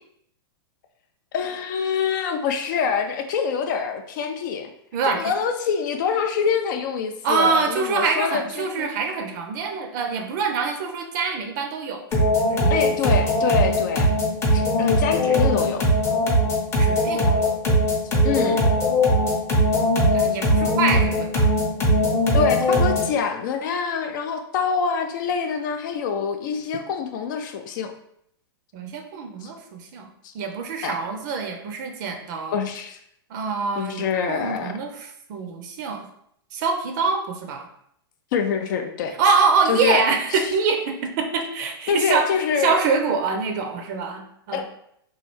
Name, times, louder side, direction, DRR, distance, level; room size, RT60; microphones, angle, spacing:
voice 1, 1.3-4.7 5.1-8.9 12.7-14.1 14.5-15.8 18.2-18.7 22.3-27.9 29.4-29.5 30.2-30.3 30.8-31.0 32.5-33.0 33.8-34.7 38.3-39.2 39.7-40.0 40.3-40.4 41.9-42.8 44.5-44.6, left 6 dB, 55° left, 6 dB, 0.3 m, -25 dB
voice 2, 4.9-5.3 7.2-13.0 16.8-17.5 20.1-21.5 28.7-30.1 30.3-32.6 33.3-36.1 36.5-37.7 39.2-42.3 42.6-44.6, right 5 dB, 50° right, 4 dB, 0.4 m, -25 dB
Trance Bass Beat, 12.1-23.2, equal, 20° left, 0.7 m, -20 dB
3.1 x 2.3 x 3.0 m, 0.72 s
hypercardioid pair, 135°, 13 cm